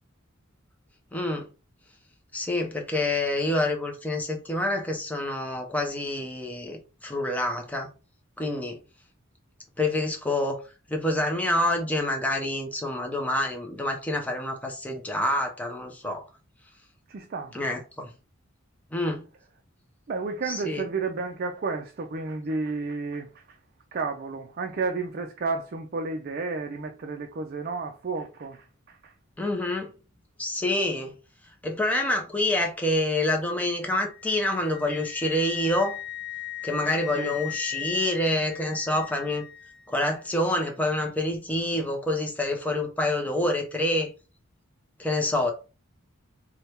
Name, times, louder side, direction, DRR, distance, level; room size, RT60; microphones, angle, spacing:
voice 1, 1.1-1.5 2.3-7.9 8.4-8.8 9.8-10.6 10.9-16.3 17.5-18.1 18.9-19.3 20.5-20.8 29.4-29.9 30.4-31.1 31.6-36.0 36.6-39.5 39.9-44.1 45.0-45.5, left 1 dB, 5° left, 0.6 m, -27 dB
voice 2, 17.1-17.6 20.1-23.6 23.9-29.1 37.2-37.4, right 4 dB, 45° right, 0.4 m, -32 dB
Wind instrument woodwind instrument, 33.9-39.8, left 15 dB, 40° left, 1.0 m, -38 dB
3.3 x 2.2 x 4.3 m
head